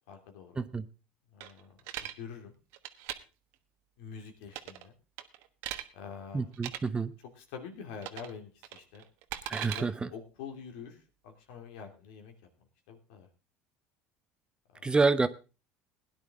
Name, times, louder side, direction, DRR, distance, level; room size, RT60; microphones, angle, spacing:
voice 1, 0.1-0.7 1.3-2.5 4.0-4.9 5.9-6.5 7.3-9.0 9.7-12.3 12.9-13.3 14.7-14.9, left 6 dB, 80° left, 4 dB, 2.8 m, -46 dB
sound 1, 1.4-2.1 2.7-3.2 4.5-4.9 5.2-5.9 6.5-6.8 8.0-8.3 8.6-9.8, right 13 dB, 70° right, 1.2 m, -39 dB
voice 2, 6.3-7.1 9.5-10.1 14.8-15.3, right 4 dB, 20° right, 13 dB, 0.9 m, -28 dB
17.0 x 10.5 x 3.7 m, 0.31 s
supercardioid pair, 95°, 5 cm